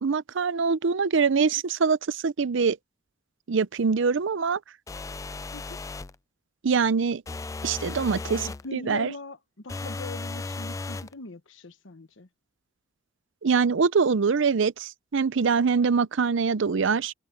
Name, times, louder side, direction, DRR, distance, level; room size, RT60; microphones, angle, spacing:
voice 1, 0.0-2.8 3.5-4.6 6.6-7.2 7.6-8.4 8.7-9.1 13.4-17.1, right 5 dB, 65° right, 0.6 m, -24 dB
sound 1, 4.9-6.2 7.3-8.7 9.7-11.1, left 3 dB, 15° left, 0.3 m, -35 dB
voice 2, 8.3-12.3, left 2 dB, 65° left, 1.2 m, -41 dB
head